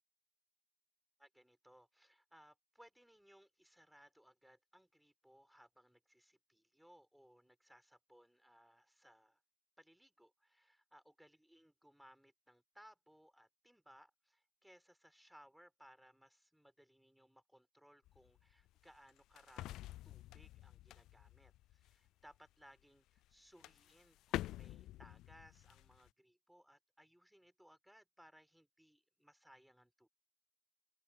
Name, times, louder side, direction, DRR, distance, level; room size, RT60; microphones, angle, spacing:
voice 1, 1.2-9.4 9.8-30.1, equal, ahead, 4.6 m, -65 dB
sound 1, 18.0-22.4 23.2-23.3 23.6-26.1, left 15 dB, 50° left, 0.4 m, -48 dB
open air
hypercardioid pair, 90°, 0 cm